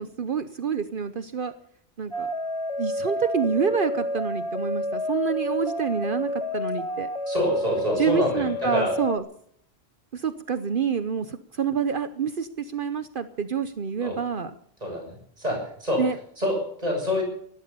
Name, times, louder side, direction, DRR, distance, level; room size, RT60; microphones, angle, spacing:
voice 1, 0.0-1.5 2.0-2.3 2.8-7.1 8.0-9.2 10.1-14.5 16.0-16.2, right 6 dB, 55° right, 12 dB, 1.0 m, -27 dB
sound 1, 2.1-9.2, left 1 dB, 30° left, 1.5 m, -30 dB
voice 2, 7.3-8.9 14.0-14.2 14.8-16.0 16.4-17.2, left 1 dB, 35° right, 0 dB, 7.3 m, -27 dB
16.5 x 12.0 x 6.7 m, 0.65 s
omnidirectional pair, 1.1 m